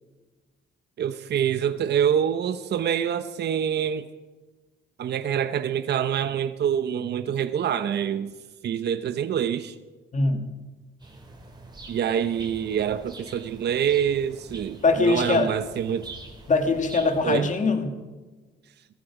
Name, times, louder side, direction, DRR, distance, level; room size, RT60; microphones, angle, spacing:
voice 1, 1.0-4.1 5.0-8.3 8.6-9.8 11.9-16.1 17.2-17.5, right 9 dB, 55° right, 10 dB, 0.8 m, -26 dB
voice 2, 10.1-10.4 14.8-15.5 16.5-17.9, left 3 dB, 40° left, 5 dB, 2.3 m, -22 dB
sound 1, 11.0-17.4, right 2 dB, 20° right, 4.5 m, -45 dB
18.5 x 14.5 x 4.9 m, 1.2 s
cardioid pair, 90°, 20 cm